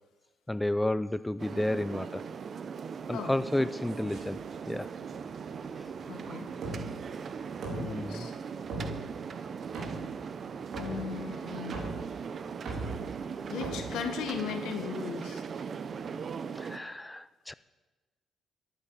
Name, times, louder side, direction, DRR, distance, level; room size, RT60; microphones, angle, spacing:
voice 1, 0.5-2.2 3.1-4.4 4.7-4.9 7.8-8.3 16.6-17.5, left 1 dB, 10° left, 0.4 m, -31 dB
sound 1, 1.4-16.8, right 6 dB, 50° right, 0.7 m, -39 dB
sound 2, 4.1-14.7, right 2 dB, 70° right, 3.9 m, -42 dB
voice 2, 6.1-6.5 7.7-8.4 10.8-11.8 13.5-15.4, left 7 dB, 85° left, 1.7 m, -37 dB
10.5 x 9.0 x 9.0 m
cardioid pair, 90°, 0 cm